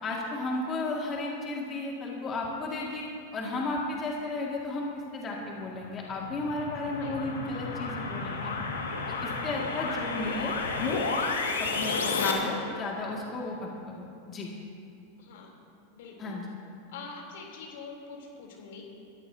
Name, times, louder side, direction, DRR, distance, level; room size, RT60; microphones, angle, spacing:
voice 1, 0.0-8.5 9.2-11.0 11.6-13.7 14.0-14.5 16.2-16.4, left 2 dB, 30° left, -2 dB, 2.2 m, -34 dB
sound 1, 5.8-12.3, left 4 dB, 90° left, 2.0 m, -32 dB
voice 2, 7.0-7.3 15.2-15.5 15.9-16.4 16.9-18.8, left 4 dB, 70° left, 0 dB, 3.5 m, -45 dB
22.5 x 14.5 x 2.9 m, 2.8 s
hypercardioid pair, 105°, 0 cm